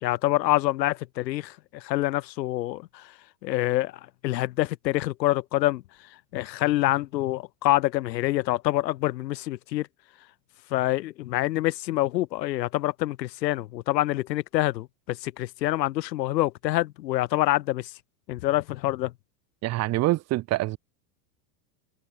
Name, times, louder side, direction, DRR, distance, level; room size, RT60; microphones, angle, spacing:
voice 1, 0.0-3.1 3.4-3.9 4.2-5.8 6.3-9.9 10.7-17.9 18.3-19.1, left 16 dB, 85° left, 3.3 m, -26 dB
voice 2, 19.6-20.8, right 17 dB, 30° right, 3.7 m, -25 dB
supercardioid pair, 170°, 49 cm